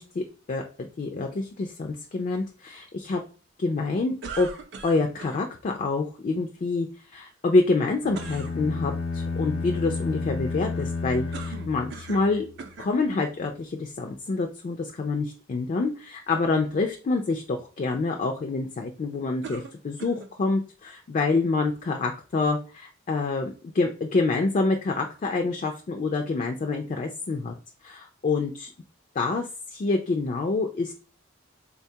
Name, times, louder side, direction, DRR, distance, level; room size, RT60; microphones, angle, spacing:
voice 1, 0.0-3.2 3.6-4.5 4.8-6.9 7.1-12.5 12.8-27.5 27.8-28.7 29.2-30.9, left 3 dB, 40° left, 3 dB, 0.3 m, -27 dB
sound 1, 4.2-5.4 8.1-8.6 11.3-12.3 12.6-13.0 13.8-13.9 19.4-20.3, right 5 dB, 60° right, 0.5 m, -40 dB
sound 2, 8.0-12.4, left 4 dB, 80° left, 1.0 m, -31 dB
3.7 x 2.3 x 2.7 m, 0.37 s
head